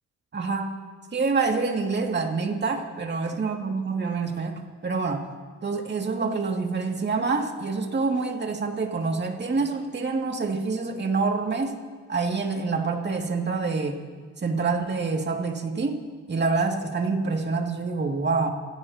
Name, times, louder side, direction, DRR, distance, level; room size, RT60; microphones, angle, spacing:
voice 1, 0.3-0.7 1.1-5.3 5.6-11.8 12.1-14.0 14.4-16.0 16.3-18.5, right 4 dB, 35° right, 2 dB, 2.3 m, -26 dB
29.0 x 16.5 x 2.9 m, 1.5 s
cardioid pair, 90°, 30 cm